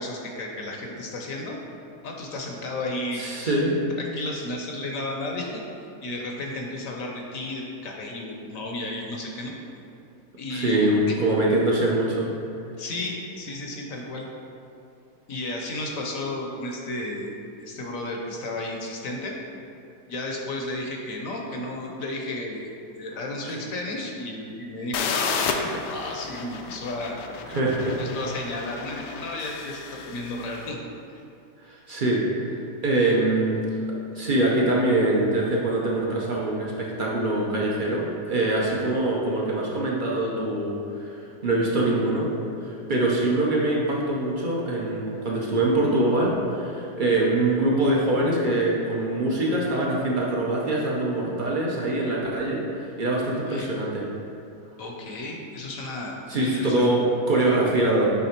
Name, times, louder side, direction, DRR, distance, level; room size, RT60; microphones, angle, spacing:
voice 1, 0.0-1.6 2.0-3.6 4.0-5.6 6.0-9.5 10.4-11.1 12.8-14.3 15.3-17.3 17.6-19.4 20.1-27.2 28.0-30.8 31.1-31.2 53.5-53.7 54.8-56.9, left 1 dB, 60° left, 0 dB, 1.0 m, -33 dB
voice 2, 3.1-3.7 10.5-12.3 23.5-23.6 27.5-28.0 31.6-32.5 32.8-33.6 34.1-42.3 42.6-52.6 53.0-54.0 56.3-58.1, right 2 dB, 55° right, -3 dB, 0.5 m, -24 dB
sound 1, 24.9-30.6, left 6 dB, 85° left, 1.2 m, -32 dB
8.2 x 3.5 x 4.4 m, 2.7 s
omnidirectional pair, 1.8 m